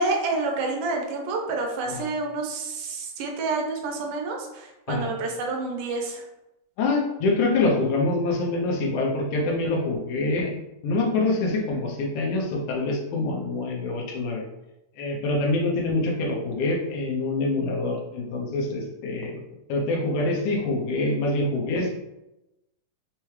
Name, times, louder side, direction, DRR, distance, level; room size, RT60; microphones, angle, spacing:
voice 1, 0.0-6.2, right 3 dB, 80° right, 1 dB, 2.1 m, -28 dB
voice 2, 6.8-10.5 10.8-14.4 15.0-19.4 19.7-21.9, left 2 dB, 75° left, -1 dB, 2.1 m, -25 dB
5.8 x 2.2 x 3.1 m, 0.94 s
omnidirectional pair, 4.0 m